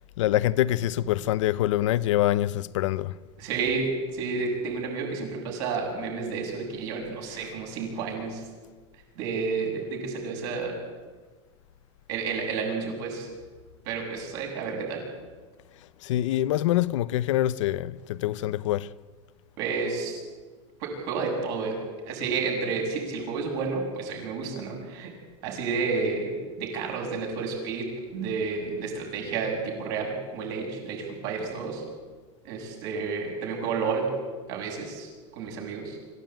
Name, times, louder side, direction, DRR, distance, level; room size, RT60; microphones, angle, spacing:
voice 1, 0.2-3.2 7.4-7.5 16.0-18.9, left 14 dB, 85° left, 0.9 m, -25 dB
voice 2, 3.4-8.4 9.2-10.8 12.1-13.3 13.9-15.0 19.6-20.2 20.8-21.8 22.0-25.1 25.4-31.8 32.4-34.1 34.5-36.0, right 4 dB, 50° right, 7.3 m, -31 dB
25.5 x 15.0 x 9.1 m
supercardioid pair, 175°, 16 cm